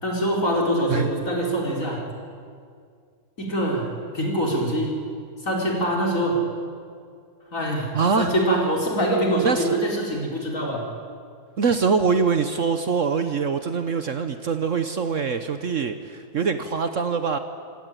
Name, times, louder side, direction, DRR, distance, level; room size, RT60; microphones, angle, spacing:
voice 1, 0.0-2.0 3.4-5.0 5.4-6.4 7.5-10.8, right 1 dB, 50° left, -1 dB, 4.8 m, -24 dB
voice 2, 7.9-8.3 9.4-9.8 11.6-17.4, right 5 dB, 55° right, 9 dB, 1.2 m, -23 dB
26.5 x 17.0 x 9.2 m, 2.2 s
omnidirectional pair, 1.8 m